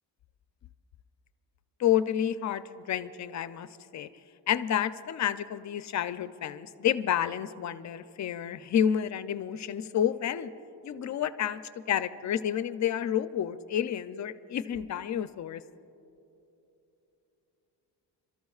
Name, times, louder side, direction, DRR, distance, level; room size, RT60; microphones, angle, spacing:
voice 1, 1.8-4.1 4.5-10.5 10.8-11.6 11.9-15.6, left 9 dB, 45° left, 13 dB, 0.4 m, -30 dB
29.5 x 13.5 x 2.4 m, 2.9 s
cardioid pair, 135°, 42 cm